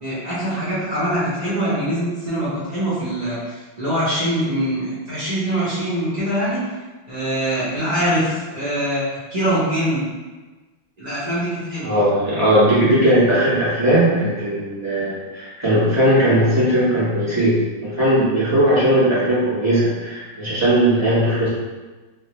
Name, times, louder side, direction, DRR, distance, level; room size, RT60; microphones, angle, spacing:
voice 1, 0.0-6.6 7.1-10.0 11.0-12.0, right 1 dB, 80° right, -11 dB, 0.3 m, -23 dB
voice 2, 11.8-21.5, right 1 dB, 10° right, -12 dB, 1.0 m, -18 dB
3.5 x 2.5 x 3.0 m, 1.2 s
omnidirectional pair, 2.3 m